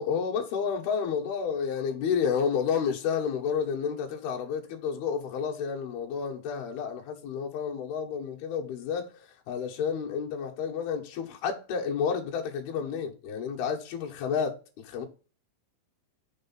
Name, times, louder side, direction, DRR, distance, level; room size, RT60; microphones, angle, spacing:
voice 1, 0.0-15.1, left 6 dB, 65° left, 3.0 m, -30 dB
6.9 x 5.0 x 5.7 m
omnidirectional pair, 5.5 m